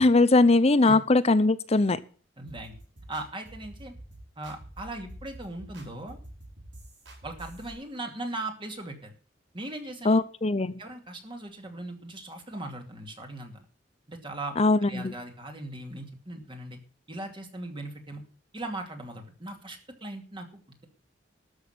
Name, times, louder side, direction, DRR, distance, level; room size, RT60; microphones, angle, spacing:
voice 1, 0.0-2.0 10.0-10.7 14.6-15.1, left 2 dB, 35° left, 15 dB, 0.7 m, -21 dB
voice 2, 2.4-2.7 3.1-3.9 4.4-6.2 7.2-9.1 9.5-10.2 10.8-13.6 14.1-14.6 14.9-16.8 17.1-18.2 18.5-20.9, right 2 dB, 25° right, 4 dB, 2.7 m, -39 dB
sound 1, 2.5-7.7, right 1 dB, 85° right, 5.2 m, -47 dB
13.0 x 6.5 x 9.3 m, 0.39 s
head